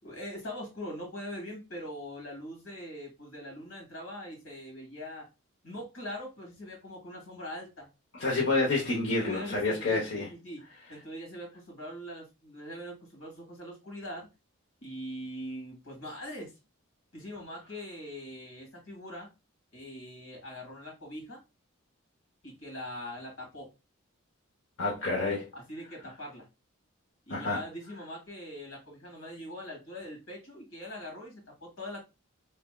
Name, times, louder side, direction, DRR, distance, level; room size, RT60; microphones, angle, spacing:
voice 1, 0.0-5.3 5.6-7.9 9.2-10.6 10.9-14.3 14.8-16.5 17.1-19.3 19.7-21.4 22.4-23.7 25.5-26.5 27.3-32.0, equal, 85° left, 2.2 m, -42 dB
voice 2, 8.1-10.3 24.8-25.5 27.3-27.6, left 3 dB, 60° left, 0.9 m, -28 dB
4.2 x 3.4 x 2.2 m
head